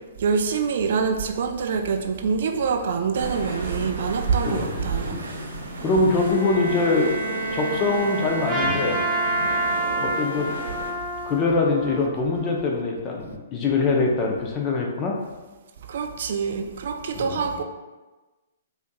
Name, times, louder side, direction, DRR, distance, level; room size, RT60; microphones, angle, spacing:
voice 1, 0.2-5.2 15.9-17.6, right 5 dB, 60° right, 5 dB, 0.3 m, -26 dB
sound 1, 3.1-10.9, right 3 dB, 75° right, 0.8 m, -32 dB
voice 2, 5.8-7.1 7.5-9.0 10.0-10.5 11.2-15.2 17.1-17.6, left 3 dB, 25° left, 0 dB, 0.6 m, -23 dB
Bowed string instrument, 6.2-10.2, right 2 dB, 90° left, 0.6 m, -32 dB
Trumpet, 8.5-12.8, right 1 dB, ahead, 1.3 m, -28 dB
4.4 x 2.7 x 2.2 m, 1.2 s
hypercardioid pair, 125°, 0 cm